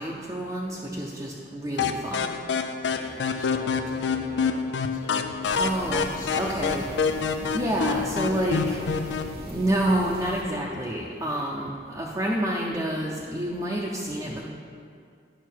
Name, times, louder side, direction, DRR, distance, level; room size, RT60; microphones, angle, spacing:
voice 1, 0.0-2.3 5.6-6.0 6.4-6.9 7.5-8.8 9.5-14.4, right 1 dB, 20° right, -4 dB, 0.6 m, -28 dB
sound 1, 1.8-9.3, left 5 dB, 90° left, 0.4 m, -27 dB
voice 2, 2.8-5.4 6.1-6.8 8.4-8.8, left 1 dB, 50° left, -1 dB, 1.3 m, -44 dB
sound 2, 5.4-10.4, right 1 dB, 60° right, 0.8 m, -40 dB
10.0 x 5.9 x 4.5 m, 2.3 s
head